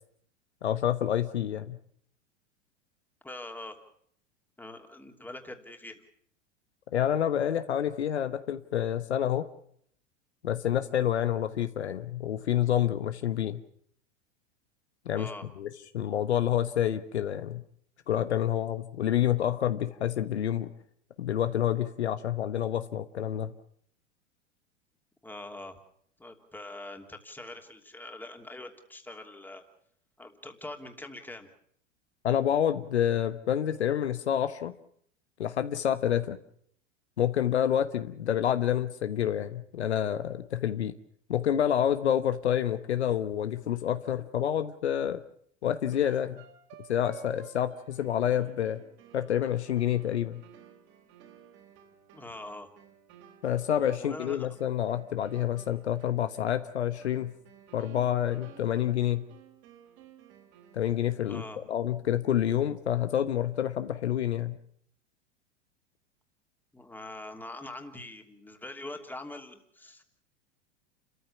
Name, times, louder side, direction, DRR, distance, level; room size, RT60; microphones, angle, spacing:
voice 1, 0.6-1.8 6.9-9.5 10.4-13.6 15.0-15.3 15.6-15.7 15.9-17.6 18.1-20.7 21.2-23.5 32.2-34.7 35.4-36.4 37.2-40.9 41.3-45.2 45.6-46.4 46.9-48.8 49.1-50.4 53.4-57.3 57.7-59.2 60.7-64.6, left 10 dB, 70° left, 10 dB, 1.3 m, -28 dB
voice 2, 3.2-3.8 4.6-6.0 15.2-15.4 25.2-25.8 26.2-29.6 30.2-31.5 52.1-52.7 54.0-54.5 61.2-61.6 66.7-70.0, left 2 dB, 5° left, 4 dB, 2.9 m, -43 dB
sound 1, 45.9-61.2, right 8 dB, 45° right, 3.8 m, -55 dB
29.5 x 14.5 x 7.2 m, 0.65 s
figure-of-eight pair, 90°, 35 cm